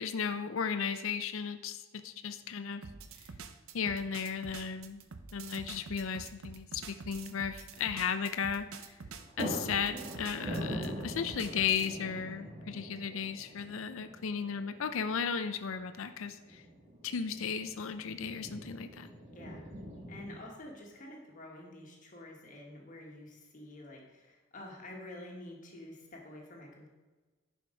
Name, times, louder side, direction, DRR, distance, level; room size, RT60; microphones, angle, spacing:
voice 1, 0.0-2.9 3.7-5.0 5.3-9.0 9.4-16.6 17.0-19.1, left 6 dB, 70° left, 9 dB, 0.5 m, -35 dB
sound 1, 2.4-2.5 4.1-4.5 4.8-4.9 8.6-8.8 9.1-20.4, right 1 dB, 30° right, 1.6 m, -43 dB
sound 2, 2.8-11.9, right 4 dB, 75° right, 0.6 m, -47 dB
voice 2, 19.3-19.6 20.1-26.9, left 1 dB, 35° left, -1 dB, 1.6 m, -48 dB
10.5 x 5.1 x 5.1 m, 1.3 s
head